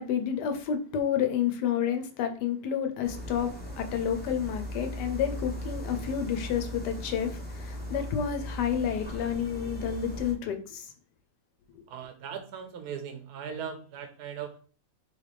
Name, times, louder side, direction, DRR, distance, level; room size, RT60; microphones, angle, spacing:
voice 1, 0.0-10.9, left 8 dB, 80° left, 1.2 m, -30 dB
sound 1, 3.0-10.3, equal, 10° left, 0.4 m, -38 dB
voice 2, 11.9-14.6, right 7 dB, 75° right, 1.2 m, -39 dB
4.0 x 3.2 x 3.3 m
omnidirectional pair, 1.8 m